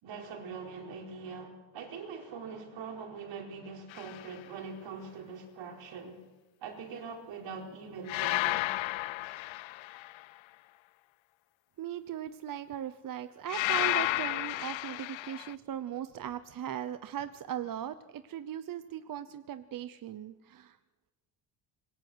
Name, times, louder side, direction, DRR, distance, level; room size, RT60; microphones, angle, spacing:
voice 1, 0.0-6.2 6.6-8.7, right 5 dB, 75° right, 4.6 m, -43 dB
sound 1, 3.9-4.3 8.1-10.2 13.5-15.5, left 18 dB, 90° left, 0.7 m, -32 dB
voice 2, 11.8-20.7, right 10 dB, 45° right, 0.9 m, -38 dB
26.0 x 22.5 x 6.3 m
cardioid pair, 150°, 45 cm